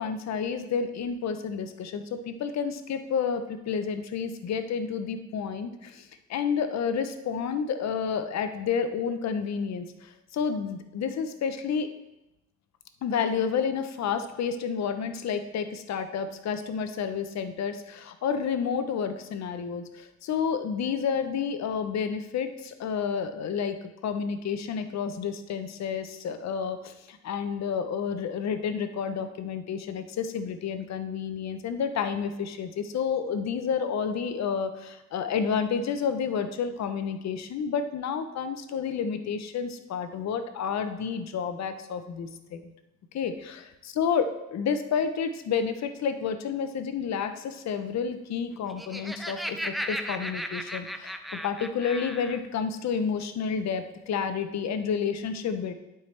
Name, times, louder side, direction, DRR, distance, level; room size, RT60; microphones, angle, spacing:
voice 1, 0.0-11.9 13.0-42.7 43.1-55.7, left 6 dB, 60° left, 9 dB, 0.8 m, -30 dB
Laughter, 48.5-52.4, equal, ahead, 0.5 m, -35 dB
11.5 x 4.7 x 3.3 m, 0.95 s
cardioid pair, 90°, 30 cm